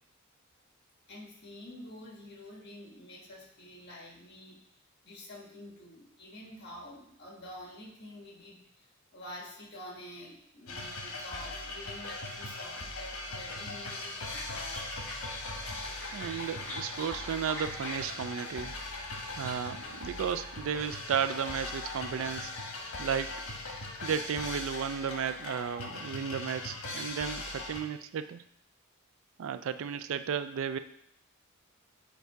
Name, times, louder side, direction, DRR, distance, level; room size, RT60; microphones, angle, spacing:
voice 1, 1.1-4.6 5.0-8.9 9.1-14.8, left 1 dB, 50° left, -1 dB, 1.5 m, -48 dB
sound 1, 10.7-27.8, left 2 dB, 80° left, 1.1 m, -40 dB
sound 2, 13.8-22.4, left 1 dB, 10° left, 1.1 m, -47 dB
voice 2, 16.1-18.8 19.4-22.5 23.0-23.4 24.0-28.4 29.4-30.8, right 7 dB, 65° right, 11 dB, 0.3 m, -34 dB
7.9 x 2.7 x 4.6 m, 0.71 s
head